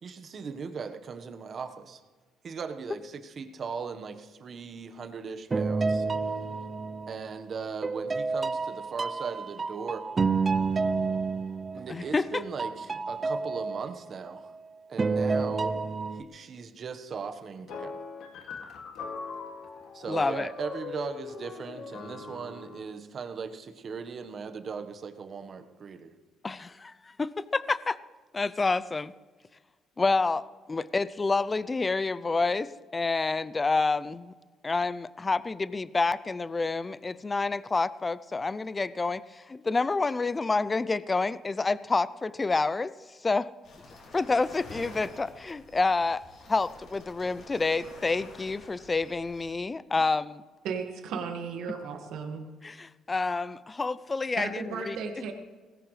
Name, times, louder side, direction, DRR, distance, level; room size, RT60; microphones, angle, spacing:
voice 1, 0.0-2.0 2.4-6.1 7.1-10.0 11.7-14.5 14.9-15.8 16.1-18.0 19.9-26.1, right 5 dB, 45° right, 8 dB, 1.3 m, -38 dB
sound 1, 5.5-7.4 7.8-12.3 12.6-14.5 15.0-16.2, right 4 dB, 30° right, 0.6 m, -30 dB
voice 2, 11.9-12.4 20.1-20.5 26.4-26.9 27.2-28.0 28.3-29.1 30.0-34.3 34.6-42.9 43.2-43.5 44.1-46.2 46.5-50.4 52.6-55.0, left 3 dB, 25° left, 17 dB, 0.5 m, -28 dB
sound 2, 17.7-22.9, left 5 dB, 75° left, 2.3 m, -41 dB
sound 3, 43.6-49.5, left 2 dB, 60° left, 5.6 m, -49 dB
voice 3, 50.6-52.4 54.4-55.3, right 5 dB, 75° right, 3 dB, 1.8 m, -35 dB
19.0 x 16.5 x 3.3 m, 1.4 s
cardioid pair, 90°, 0 cm